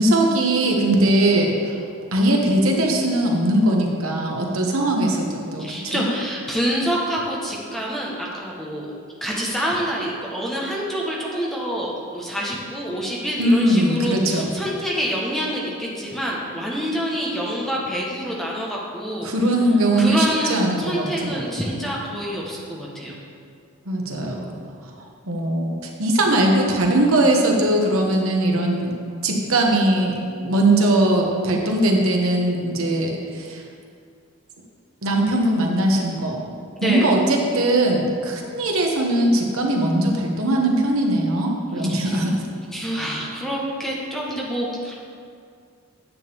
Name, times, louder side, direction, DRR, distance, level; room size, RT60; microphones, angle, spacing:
voice 1, 0.0-1.8 2.1-6.1 13.4-14.5 19.2-21.4 23.9-24.6 25.3-28.9 29.2-33.6 35.0-36.5 36.8-42.4, right 1 dB, 90° right, 1 dB, 1.2 m, -20 dB
voice 2, 5.6-8.9 9.2-19.3 20.0-23.1 36.8-37.0 41.9-42.2 42.7-45.0, equal, ahead, -4 dB, 1.2 m, -27 dB
9.6 x 8.3 x 3.5 m, 2.3 s
head